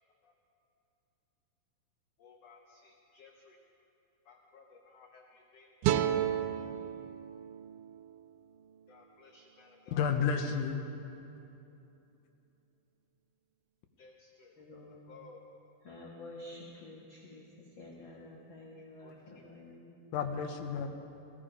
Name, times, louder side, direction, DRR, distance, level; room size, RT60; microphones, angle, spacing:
voice 1, 2.2-3.6 4.3-6.0 8.9-10.0 14.0-14.5 15.1-15.4 19.0-19.1, left 4 dB, 70° left, 1 dB, 1.5 m, -57 dB
sound 1, 5.8-9.0, right 10 dB, 80° right, 1.9 m, -33 dB
voice 2, 9.9-10.8 20.1-20.9, left 6 dB, 85° left, 5 dB, 2.6 m, -31 dB
voice 3, 14.6-15.0 15.8-17.5 17.7-20.0, left 2 dB, 50° left, -4 dB, 1.5 m, -49 dB
17.5 x 15.5 x 5.1 m, 2.9 s
omnidirectional pair, 4.0 m